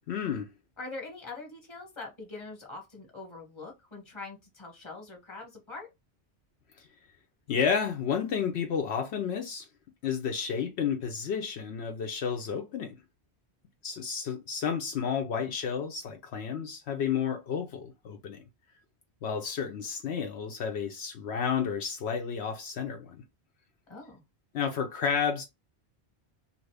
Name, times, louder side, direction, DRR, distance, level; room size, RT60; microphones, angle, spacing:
voice 1, 0.1-0.5 7.5-9.7 10.0-13.0 13.8-18.4 19.2-23.2 24.5-25.4, left 7 dB, 75° left, 0.8 m, -31 dB
voice 2, 0.8-5.9 23.9-24.2, left 3 dB, 25° left, 1.1 m, -43 dB
2.8 x 2.6 x 3.2 m
omnidirectional pair, 1.1 m